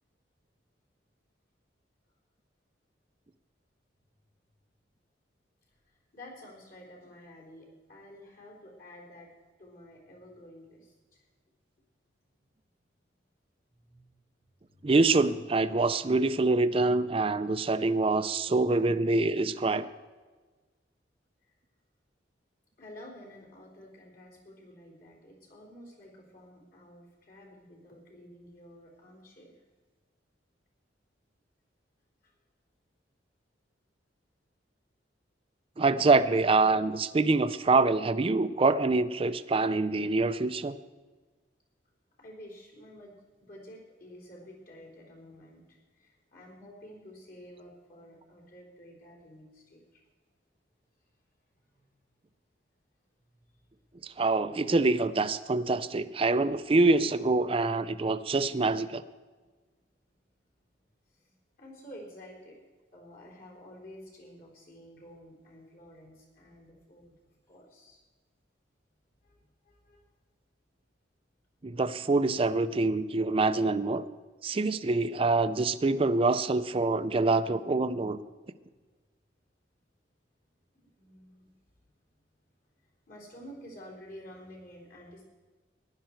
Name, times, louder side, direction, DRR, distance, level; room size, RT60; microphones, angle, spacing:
voice 1, 5.7-9.3 9.6-11.3 13.8-14.2 14.7-14.9 19.5-19.6 21.4-21.5 22.8-29.6 32.2-32.3 42.2-50.0 51.7-51.9 53.6-53.7 61.1-62.6 62.9-68.0 69.2-70.0 80.8-82.1 82.8-85.2, equal, 50° left, -1 dB, 3.8 m, -51 dB
voice 2, 14.8-19.9 35.8-40.8 54.0-59.0 71.6-74.0 74.4-78.2, right 3 dB, 30° right, 13 dB, 0.5 m, -25 dB
15.0 x 11.5 x 4.6 m, 1.3 s
head